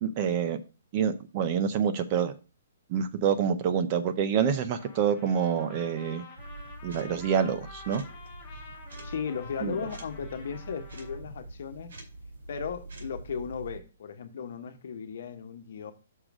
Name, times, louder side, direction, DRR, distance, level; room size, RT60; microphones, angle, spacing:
voice 1, 0.0-0.6 0.9-2.3 2.9-6.2 6.8-8.0 9.6-9.8, right 7 dB, 30° right, 0.5 m, -27 dB
Trumpet, 4.7-11.2, left 3 dB, 15° left, 1.8 m, -49 dB
sound 1, 6.4-13.8, right 2 dB, 80° right, 2.5 m, -44 dB
voice 2, 9.0-12.0 12.5-15.9, left 7 dB, 55° left, 1.1 m, -36 dB
6.4 x 3.8 x 6.1 m
hypercardioid pair, 170°, 0 cm